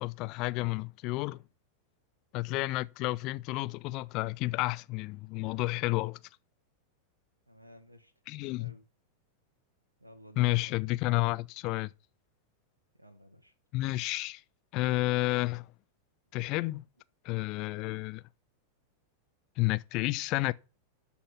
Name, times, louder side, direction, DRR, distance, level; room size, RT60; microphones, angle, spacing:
voice 1, 0.0-1.4 2.3-6.2 8.3-8.7 10.4-11.9 13.7-14.4 14.7-15.7 16.3-16.8 17.2-18.2 19.6-20.5, left 20 dB, 40° left, 0.5 m, -31 dB
voice 2, 7.5-8.1 8.6-8.9 10.0-10.8 13.0-13.5, equal, 85° right, 1.2 m, -54 dB
12.5 x 4.3 x 7.1 m
figure-of-eight pair, 90°, 0 cm